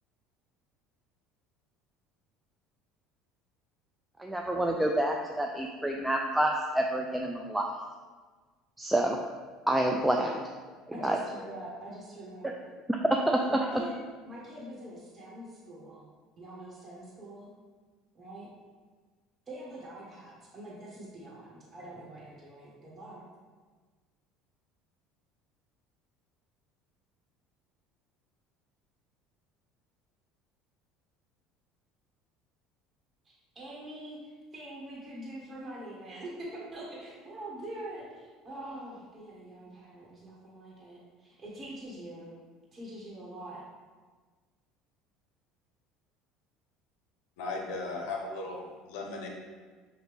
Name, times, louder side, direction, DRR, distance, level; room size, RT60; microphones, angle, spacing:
voice 1, 4.2-7.7 8.8-9.2 9.7-10.4 11.0-11.2 12.9-13.6, right 1 dB, 10° right, 1 dB, 0.4 m, -28 dB
voice 2, 10.9-12.7 13.5-14.0 14.2-16.1 16.4-17.5 18.1-18.5 19.5-23.2 33.2-42.3 42.7-43.6, right 1 dB, 30° right, -5 dB, 1.4 m, -44 dB
voice 3, 47.4-49.3, left 3 dB, 75° left, 0 dB, 0.7 m, -36 dB
5.9 x 2.6 x 3.3 m, 1.4 s
hypercardioid pair, 80°, 0 cm